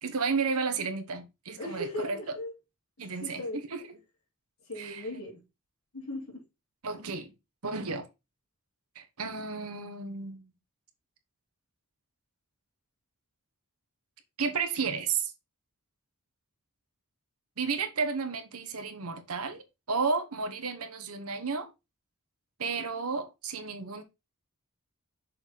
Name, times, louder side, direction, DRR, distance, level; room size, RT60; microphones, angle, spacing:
voice 1, 0.0-2.2 3.0-3.4 3.7-4.0 4.8-5.1 6.8-7.3 7.6-8.1 8.9-10.5 14.4-15.3 17.6-19.6 19.9-21.7 22.6-24.0, right 5 dB, 85° right, 1.2 m, -32 dB
voice 2, 1.6-2.5 3.2-3.6 4.7-5.4 5.9-6.4, left 1 dB, 80° left, 3.2 m, -37 dB
6.4 x 4.6 x 3.8 m
head